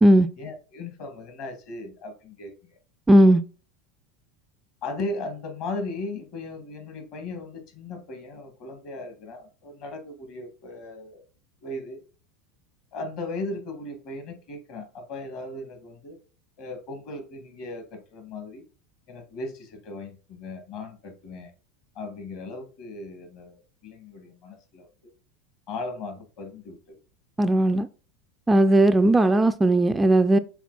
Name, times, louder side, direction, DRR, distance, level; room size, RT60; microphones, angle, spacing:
voice 1, 0.4-2.8 4.8-11.2 11.6-12.0 12.9-16.2 16.6-18.7 19.1-21.5 22.0-25.1 25.7-27.0, left 2 dB, 60° left, 2.1 m, -37 dB
voice 2, 3.1-3.4 27.4-27.9 28.5-30.4, right 1 dB, 15° right, 0.3 m, -17 dB
5.8 x 4.1 x 4.2 m
hypercardioid pair, 100°, 0 cm